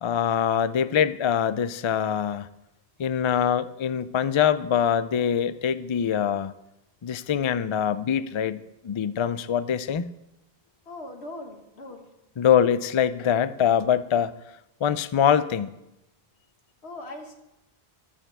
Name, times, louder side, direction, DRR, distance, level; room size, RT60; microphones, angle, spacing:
voice 1, 0.0-2.5 3.0-6.5 7.0-10.1 12.4-14.3 14.8-15.7, left 8 dB, 50° left, 15 dB, 0.3 m, -24 dB
voice 2, 10.9-12.1 16.8-17.3, left 2 dB, 85° left, 3 dB, 2.0 m, -40 dB
12.5 x 6.3 x 7.9 m, 0.91 s
omnidirectional pair, 1.1 m